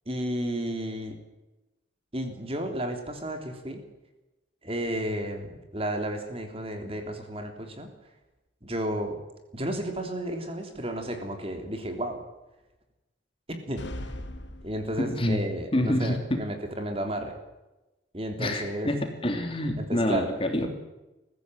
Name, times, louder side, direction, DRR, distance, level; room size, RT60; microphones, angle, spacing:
voice 1, 0.0-1.2 2.1-3.8 4.6-7.9 8.6-9.2 9.5-12.2 13.7-14.1 14.6-17.3 18.1-18.9 19.8-20.3, right 1 dB, 30° right, 5 dB, 3.4 m, -32 dB
sound 1, 13.8-15.4, left 1 dB, 70° left, 2.1 m, -39 dB
voice 2, 15.0-15.4 15.7-16.4 18.4-20.7, left 1 dB, 30° left, 5 dB, 3.0 m, -27 dB
22.5 x 15.5 x 9.4 m, 1.0 s
head